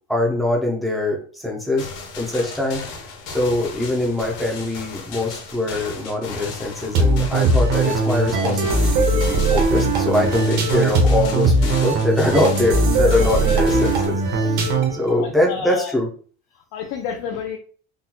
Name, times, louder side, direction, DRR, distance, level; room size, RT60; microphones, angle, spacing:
voice 1, 0.1-1.9 2.2-2.8 3.3-16.1, left 2 dB, ahead, -1 dB, 0.4 m, -23 dB
sound 1, 1.8-14.1, left 4 dB, 70° left, 0.9 m, -35 dB
sound 2, 6.9-15.1, right 2 dB, 60° right, 0.9 m, -19 dB
voice 2, 15.0-15.9 16.5-17.6, left 7 dB, 85° left, 1 dB, 0.6 m, -31 dB
3.7 x 2.2 x 2.8 m, 0.42 s
cardioid pair, 180°, 34 cm